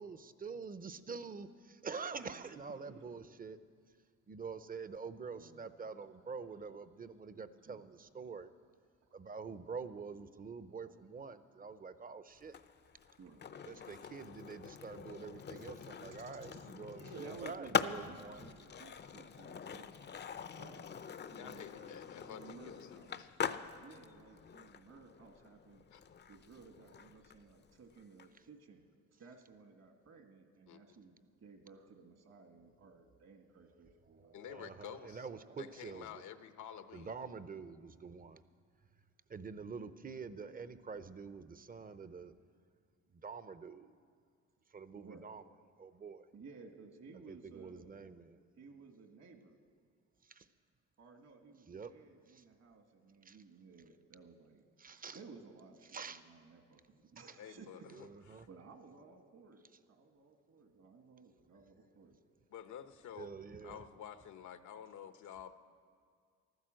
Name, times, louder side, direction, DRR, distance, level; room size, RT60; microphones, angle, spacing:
voice 1, 0.0-3.6 4.3-8.5 9.1-12.6 13.7-18.5 34.4-36.1 36.9-38.4 39.3-42.3 43.2-43.9 44.7-45.4 45.8-46.3 47.3-48.4 50.3-50.4 51.7-51.9 53.2-53.4 54.8-55.2 55.9-56.2 58.0-58.5 63.2-63.8, right 5 dB, 30° right, 13 dB, 0.7 m, -46 dB
voice 2, 2.2-3.1 5.4-5.7 7.3-7.9 13.2-13.5 15.5-15.6 16.5-19.9 20.6-20.9 21.3-23.4 23.8-25.8 26.3-28.8 29.2-34.4 44.9-45.3 46.3-48.1 48.6-49.6 51.0-62.2, right 4 dB, 60° right, 5 dB, 2.0 m, -57 dB
Skateboard, 12.4-28.3, left 6 dB, 35° left, 0.6 m, -43 dB
voice 3, 21.3-23.3 25.9-26.0 30.7-30.8 34.3-35.3 35.6-37.3 57.4-58.1 58.3-58.4 62.5-63.3 63.6-65.5, left 9 dB, 75° left, 10 dB, 1.0 m, -50 dB
14.5 x 12.5 x 7.7 m, 2.1 s
cardioid pair, 90°, 30 cm